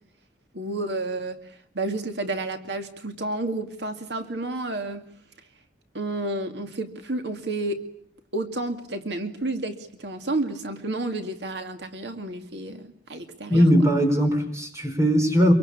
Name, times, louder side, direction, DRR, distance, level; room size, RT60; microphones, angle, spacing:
voice 1, 0.5-5.0 5.9-7.8 8.3-13.7, right 2 dB, 70° right, 7 dB, 2.3 m, -31 dB
voice 2, 13.5-15.5, equal, 15° right, 6 dB, 5.1 m, -19 dB
25.5 x 23.5 x 8.6 m, 0.66 s
head